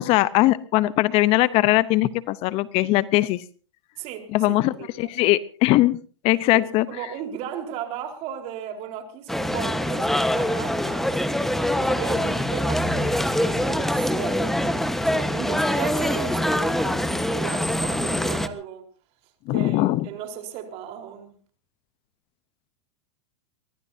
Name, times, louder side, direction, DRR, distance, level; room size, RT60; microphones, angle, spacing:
voice 1, 0.0-3.4 4.3-6.0 6.2-6.9 19.5-20.1, left 17 dB, 40° left, 0.9 m, -20 dB
voice 2, 4.0-5.1 6.5-11.2 11.8-18.9 19.5-21.3, right 9 dB, 45° right, 4.3 m, -36 dB
sound 1, 9.3-18.5, left 1 dB, ahead, 1.3 m, -24 dB
23.0 x 21.0 x 2.8 m
hypercardioid pair, 120°, 15 cm